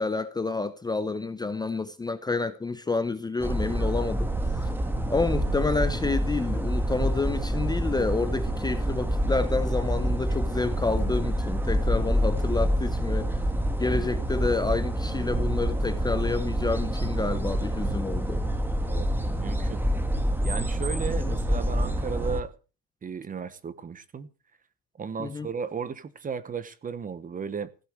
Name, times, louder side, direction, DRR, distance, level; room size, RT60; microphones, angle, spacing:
voice 1, 0.0-4.3 5.1-13.4 13.8-18.4 21.2-21.3 25.2-25.5, left 3 dB, 10° left, 0.8 m, -29 dB
sound 1, 3.4-22.4, equal, 5° right, 1.4 m, -27 dB
voice 2, 18.9-19.8 20.4-22.5 23.0-24.3 25.0-27.7, right 6 dB, 20° right, 1.0 m, -35 dB
16.0 x 8.3 x 8.0 m
cardioid pair, 165°, 37 cm